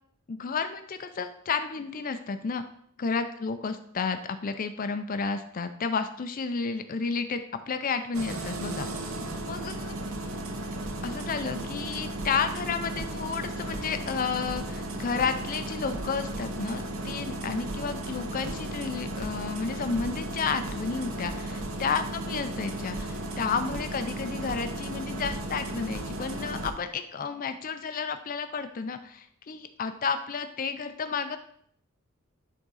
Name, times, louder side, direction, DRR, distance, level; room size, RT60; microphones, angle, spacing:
voice 1, 0.3-2.6 3.0-7.4 7.7-8.9 9.4-9.9 11.0-31.4, left 5 dB, 40° left, 9 dB, 0.4 m, -31 dB
Engine starting, 8.1-26.7, right 1 dB, 80° right, 0.9 m, -35 dB
11.0 x 3.7 x 4.0 m, 0.65 s
head